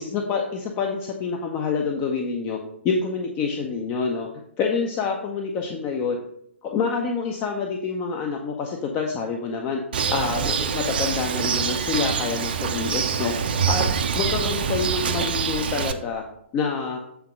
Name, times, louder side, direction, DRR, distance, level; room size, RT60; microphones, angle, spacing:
voice 1, 0.0-2.6 2.8-4.3 4.6-6.2 6.6-9.8 10.1-13.8 14.1-16.2 16.5-17.0, left 5 dB, 25° left, 2 dB, 0.6 m, -27 dB
Bird, 9.9-15.9, right 7 dB, 50° right, 0.6 m, -25 dB
8.0 x 3.7 x 5.3 m, 0.72 s
figure-of-eight pair, 120°, 7 cm